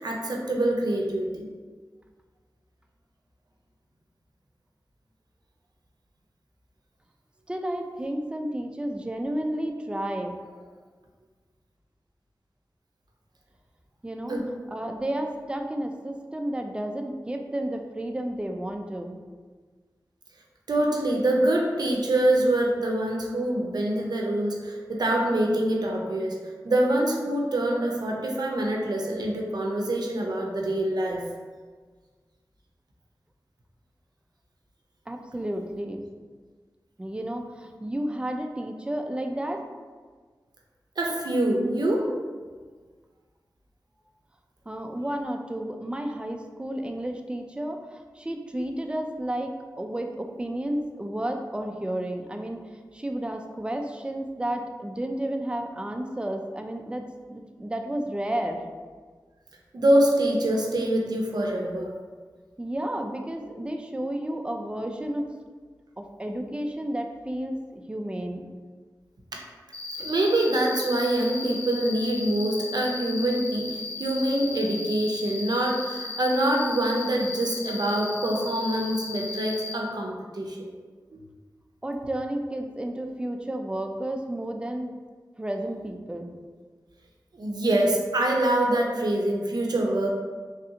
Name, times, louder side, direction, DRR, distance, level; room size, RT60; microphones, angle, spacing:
voice 1, 0.0-1.5 14.3-14.5 20.7-26.4 26.6-31.3 41.0-42.1 59.7-61.9 69.3-69.4 70.0-80.7 81.1-81.2 87.3-90.2, right 1 dB, 65° right, 0 dB, 0.5 m, -25 dB
voice 2, 7.5-10.4 14.0-14.4 14.7-19.2 35.1-36.0 37.0-39.6 44.7-52.6 52.9-57.0 57.3-58.6 62.6-65.3 66.0-68.4 81.8-84.9 85.4-86.3, right 1 dB, 15° right, 4 dB, 0.4 m, -32 dB
Cricket, 69.7-79.7, left 3 dB, 15° left, 1.0 m, -36 dB
3.2 x 2.5 x 2.8 m, 1.5 s
cardioid pair, 40°, 7 cm